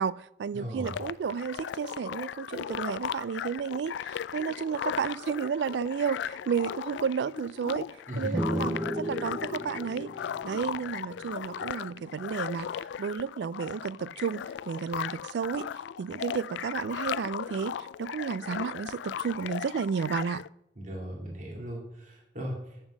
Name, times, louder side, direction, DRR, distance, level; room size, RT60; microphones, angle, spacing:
voice 1, 0.0-7.9 8.2-10.1 10.4-15.7 16.0-20.4, right 6 dB, 70° right, 0.3 m, -32 dB
voice 2, 0.5-0.9 8.1-8.6 20.8-22.9, equal, 45° right, 2.5 m, -37 dB
sound 1, 0.8-20.5, left 8 dB, 80° left, 0.3 m, -37 dB
sound 2, 8.3-11.9, equal, 5° right, 0.5 m, -35 dB
8.2 x 7.2 x 6.3 m
head